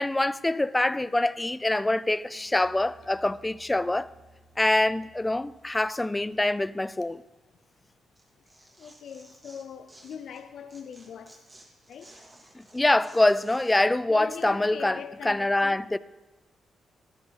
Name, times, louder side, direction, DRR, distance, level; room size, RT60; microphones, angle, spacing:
voice 1, 0.0-4.1 4.6-7.2 12.6-16.0, left 2 dB, 15° left, 0.4 m, -25 dB
Musical instrument, 2.3-5.8, right 2 dB, 60° right, 2.1 m, -58 dB
Tearing, 8.1-10.4 10.7-13.8, right 1 dB, 20° right, 2.6 m, -54 dB
voice 2, 8.8-11.4 11.9-12.2 14.1-15.8, left 7 dB, 70° left, 0.5 m, -41 dB
13.5 x 13.0 x 4.0 m
cardioid pair, 100°, 0 cm